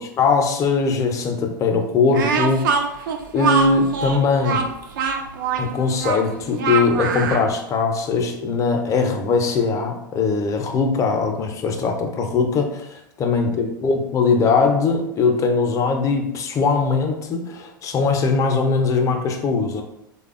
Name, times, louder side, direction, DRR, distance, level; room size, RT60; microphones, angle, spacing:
voice 1, 0.0-2.8 3.3-4.7 5.6-19.8, left 4 dB, 30° left, 4 dB, 0.4 m, -21 dB
Speech, 2.1-7.5, right 5 dB, 65° right, 0.4 m, -23 dB
3.2 x 2.1 x 2.4 m, 0.86 s
hypercardioid pair, 90°, 11 cm